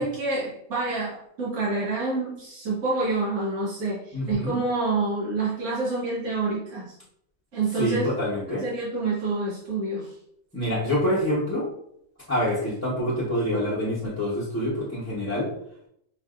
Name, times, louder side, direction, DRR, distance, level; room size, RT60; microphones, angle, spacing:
voice 1, 0.0-6.9 7.5-8.1 8.6-10.1, right 3 dB, 70° right, -7 dB, 1.8 m, -27 dB
voice 2, 4.1-4.6 7.8-8.6 10.5-11.7 12.3-15.5, equal, 10° left, -10 dB, 0.9 m, -26 dB
6.2 x 2.7 x 2.5 m, 0.73 s
omnidirectional pair, 1.6 m